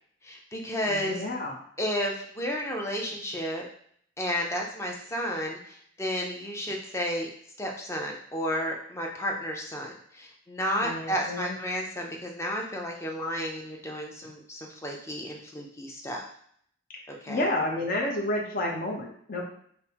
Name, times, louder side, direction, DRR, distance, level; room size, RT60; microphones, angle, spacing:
voice 1, 0.2-1.2 1.8-3.6 4.2-7.3 7.6-16.3 17.1-17.4, equal, 15° left, 0 dB, 0.5 m, -32 dB
voice 2, 0.9-1.5 10.8-11.6 17.3-19.5, left 1 dB, 45° left, -1 dB, 0.8 m, -30 dB
5.3 x 2.1 x 2.9 m, 0.63 s
head